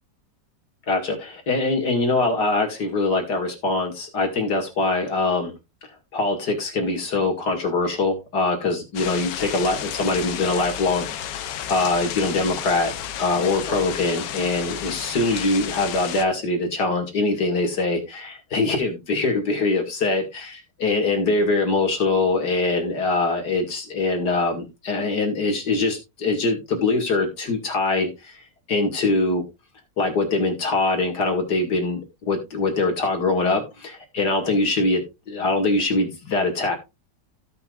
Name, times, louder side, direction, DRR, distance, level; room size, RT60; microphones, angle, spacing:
voice 1, 0.9-5.5 6.1-11.4 11.7-12.9 13.2-28.4 28.7-29.4 30.0-36.8, left 3 dB, 65° left, 2.8 m, -23 dB
sound 1, 8.9-16.2, left 10 dB, 80° left, 1.4 m, -32 dB
16.0 x 5.8 x 2.5 m
omnidirectional pair, 1.9 m